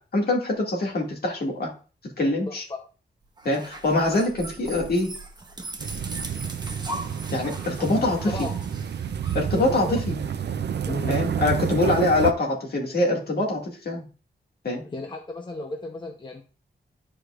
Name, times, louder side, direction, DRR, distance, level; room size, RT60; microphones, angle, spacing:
voice 1, 0.1-1.7 2.2-2.6 3.4-5.1 7.3-8.3 9.3-10.2 11.1-14.1 14.6-14.8, left 2 dB, 55° left, 0 dB, 2.1 m, -24 dB
voice 2, 2.5-2.8 8.3-8.5 9.6-10.0 10.9-11.2 14.9-16.4, left 2 dB, 25° left, 3 dB, 0.8 m, -34 dB
sound 1, 3.4-10.3, right 1 dB, 20° right, 0.9 m, -39 dB
sound 2, 5.8-12.3, right 8 dB, 65° right, 0.5 m, -30 dB
11.0 x 4.9 x 2.4 m, 0.36 s
wide cardioid pair, 145°, 19 cm